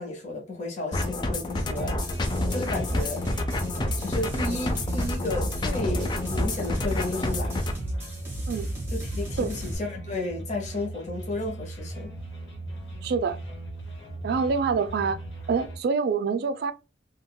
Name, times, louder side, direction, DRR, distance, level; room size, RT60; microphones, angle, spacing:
voice 1, 0.0-3.3 4.0-7.6 8.9-12.1, left 2 dB, 40° left, 0.8 m, -33 dB
sound 1, 0.9-7.8, left 2 dB, 25° left, 0.4 m, -29 dB
sound 2, 1.5-15.8, right 2 dB, 85° left, 1.0 m, -39 dB
sound 3, 1.8-9.8, right 1 dB, 10° right, 0.9 m, -34 dB
voice 2, 13.0-13.4 14.2-15.2 15.5-16.7, right 5 dB, 60° right, 0.3 m, -26 dB
3.6 x 2.2 x 2.2 m
head